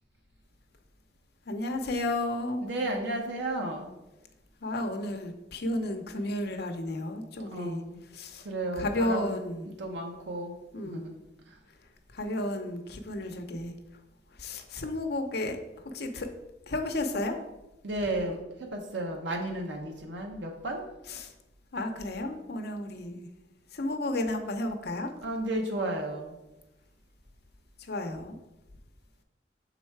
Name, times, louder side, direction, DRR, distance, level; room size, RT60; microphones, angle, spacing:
voice 1, 1.5-2.6 4.6-7.8 8.1-8.4 8.8-9.6 10.7-11.1 12.1-13.7 14.4-15.6 15.8-16.3 16.7-17.4 21.2-21.3 21.7-23.3 23.7-25.1 27.9-28.3, left 1 dB, 65° left, 5 dB, 0.7 m, -32 dB
voice 2, 2.6-3.9 7.4-8.0 8.4-9.4 9.6-10.6 10.8-11.1 11.5-11.6 17.8-20.9 25.2-26.4, right 1 dB, 90° right, 2 dB, 0.9 m, -33 dB
6.4 x 4.0 x 4.6 m, 0.98 s
head